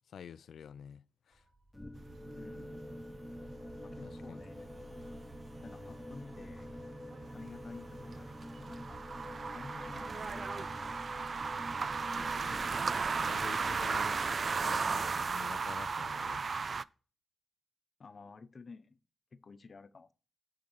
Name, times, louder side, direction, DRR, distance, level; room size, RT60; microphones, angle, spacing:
voice 1, 0.1-1.4 4.0-4.4 12.1-12.7 13.2-14.2 14.6-16.5, left 8 dB, 85° left, 0.4 m, -49 dB
sound 1, 1.3-11.0, right 3 dB, 65° right, 1.8 m, -60 dB
sound 2, 1.7-13.7, left 1 dB, 5° left, 1.0 m, -47 dB
sound 3, 2.0-16.8, right 5 dB, 50° right, 0.3 m, -36 dB
voice 2, 2.3-2.8 3.8-4.7 5.6-6.8 7.3-9.0 9.5-10.8 18.0-19.0 19.3-20.1, left 4 dB, 45° left, 0.8 m, -52 dB
10.5 x 3.6 x 7.1 m
cardioid pair, 95°, 0 cm